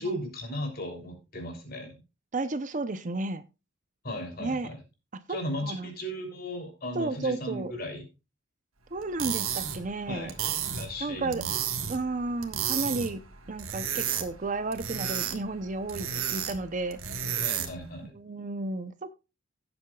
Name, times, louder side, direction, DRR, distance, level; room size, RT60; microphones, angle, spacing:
voice 1, 0.0-2.0 4.0-4.8 5.3-8.1 10.1-10.3 10.7-11.6 17.4-18.1, equal, 45° left, 3 dB, 3.1 m, -36 dB
voice 2, 2.3-3.4 4.4-4.7 5.3-5.9 6.9-7.7 8.9-10.3 11.0-11.4 11.9-13.2 13.5-17.0 18.1-19.1, right 2 dB, 40° right, 12 dB, 0.6 m, -32 dB
sound 1, 9.0-17.9, right 8 dB, 90° right, 1.5 m, -33 dB
16.5 x 7.8 x 2.3 m, 0.28 s
head